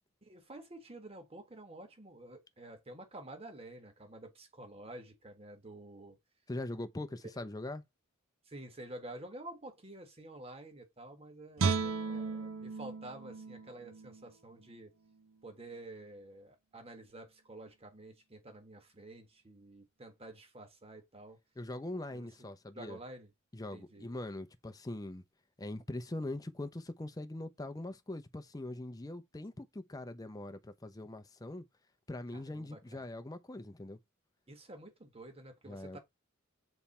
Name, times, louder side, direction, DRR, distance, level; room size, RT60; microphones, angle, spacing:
voice 1, 0.2-6.2 8.4-14.9 15.4-21.4 22.1-23.3 23.7-24.1 32.3-33.0 34.5-36.0, right 1 dB, 30° right, 1.5 m, -50 dB
voice 2, 6.5-7.8 21.6-23.0 23.5-25.2 25.6-31.6 32.1-34.0 35.7-36.0, left 1 dB, 15° left, 0.6 m, -42 dB
Guitar, 11.6-14.7 15.1-15.3, right 4 dB, 75° right, 0.7 m, -35 dB
7.1 x 3.4 x 4.2 m
head